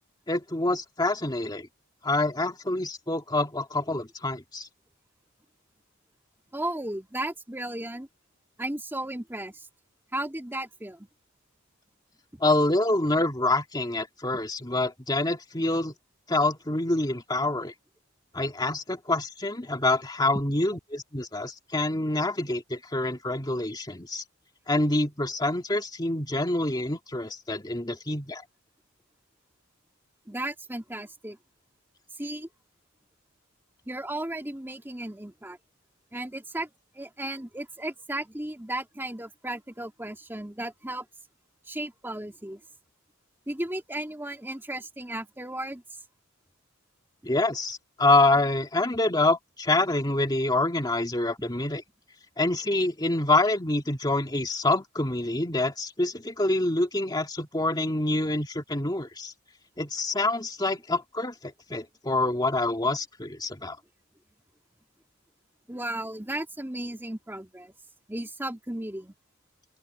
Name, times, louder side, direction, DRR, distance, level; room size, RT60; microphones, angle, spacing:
voice 1, 0.3-1.7 2.0-4.7 12.4-15.9 16.3-17.7 18.3-24.2 24.7-28.4 47.2-51.8 52.4-59.3 59.8-63.8, left 2 dB, 20° left, 2.3 m, -26 dB
voice 2, 6.5-8.1 8.6-9.7 10.1-11.1 12.3-12.4 30.3-31.4 32.2-32.5 33.8-35.6 36.1-36.7 36.9-41.1 41.7-42.6 43.5-45.8 51.4-51.5 65.7-67.7 68.1-69.1, right 1 dB, 10° right, 2.7 m, -35 dB
open air
head